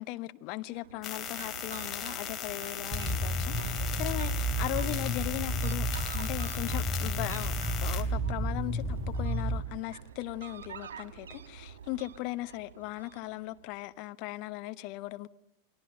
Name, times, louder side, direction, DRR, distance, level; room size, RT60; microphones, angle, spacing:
voice 1, 0.0-5.9 6.1-7.5 7.8-15.3, left 18 dB, 45° left, 1.0 m, -38 dB
Fowl, 0.7-13.7, right 7 dB, 65° right, 2.5 m, -47 dB
sound 1, 1.0-8.0, left 8 dB, 25° left, 2.8 m, -38 dB
sound 2, 2.9-9.6, right 1 dB, 20° right, 2.1 m, -32 dB
29.5 x 21.5 x 6.7 m
figure-of-eight pair, 90°, 0 cm